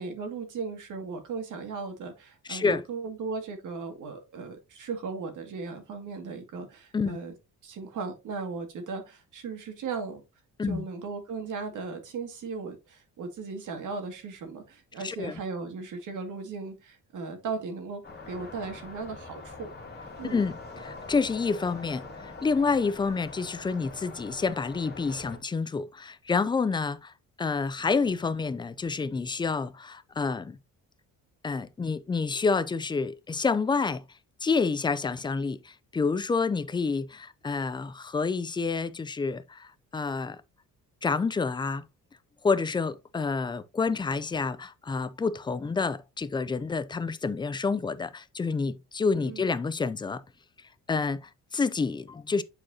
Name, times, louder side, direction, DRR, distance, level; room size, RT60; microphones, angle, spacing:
voice 1, 0.0-7.3 7.6-10.2 10.7-19.7 20.2-20.4 49.2-49.5, right 4 dB, 65° right, 2.1 m, -37 dB
voice 2, 2.5-2.8 6.9-7.2 10.6-10.8 15.0-15.4 20.3-20.5 20.8-27.1 27.4-30.6 31.4-34.0 34.4-40.4 41.0-41.8 42.4-50.2 50.9-52.4, left 4 dB, 15° left, 0.3 m, -28 dB
sound 1, 18.0-25.4, left 3 dB, 30° left, 2.0 m, -43 dB
8.5 x 4.7 x 2.7 m
cardioid pair, 135°, 33 cm